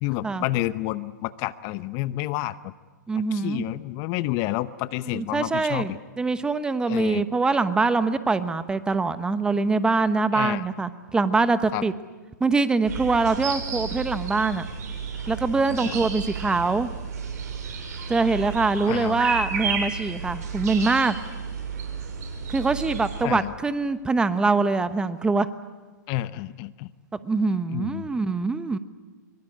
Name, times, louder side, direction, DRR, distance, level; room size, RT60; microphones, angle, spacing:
voice 1, 0.0-2.7 3.3-6.0 6.9-7.2 10.3-10.6 11.7-11.8 15.7-15.9 18.9-19.2 23.2-23.5 26.1-26.9 27.7-28.1, left 17 dB, 35° left, 15 dB, 0.8 m, -29 dB
voice 2, 3.1-3.6 5.1-5.9 6.2-11.9 12.4-14.7 15.3-16.9 18.1-21.1 22.5-25.5 27.2-28.8, right 3 dB, 10° right, 12 dB, 1.0 m, -23 dB
sound 1, 12.9-23.2, right 5 dB, 55° right, 7.2 m, -32 dB
24.0 x 23.0 x 9.9 m, 1.3 s
hypercardioid pair, 135°, 10 cm